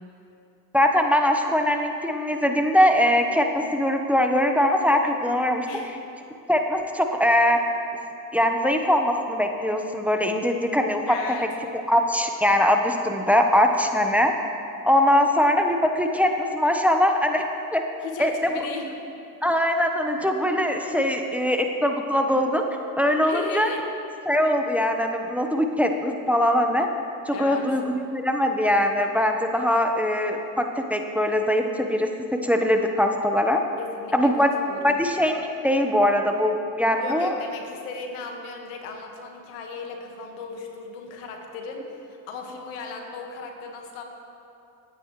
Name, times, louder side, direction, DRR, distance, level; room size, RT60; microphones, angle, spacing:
voice 1, 0.7-5.7 6.5-7.6 8.3-11.2 11.9-14.3 14.8-17.4 17.7-17.8 18.2-18.6 19.4-22.6 23.0-23.7 24.3-26.9 27.3-30.6 30.9-32.1 32.4-33.6 34.1-34.5 34.8-37.3, left 1 dB, 5° right, 4 dB, 1.1 m, -22 dB
voice 2, 11.1-11.5 15.2-15.3 18.0-18.9 23.2-23.8 27.3-27.8 33.8-34.3 34.7-35.0 37.0-44.0, left 4 dB, 80° left, 2 dB, 1.8 m, -36 dB
22.5 x 9.1 x 3.2 m, 2.7 s
hypercardioid pair, 65°, 49 cm